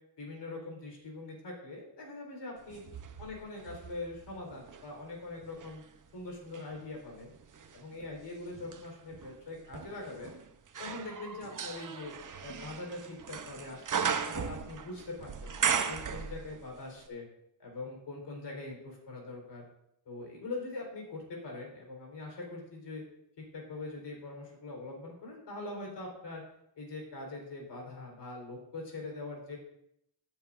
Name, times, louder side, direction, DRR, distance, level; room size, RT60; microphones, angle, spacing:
voice 1, 0.2-2.8 3.2-5.8 6.1-7.3 7.7-10.3 10.8-12.1 12.4-17.2 17.6-19.6 20.1-23.0 23.4-26.4 26.8-29.6, left 2 dB, 75° left, 0 dB, 4.2 m, -42 dB
sound 1, 2.7-4.9 5.4-16.8 17.0-17.1, right 7 dB, 45° right, 0.8 m, -37 dB
16.5 x 8.5 x 2.6 m, 0.78 s
cardioid pair, 100°, 42 cm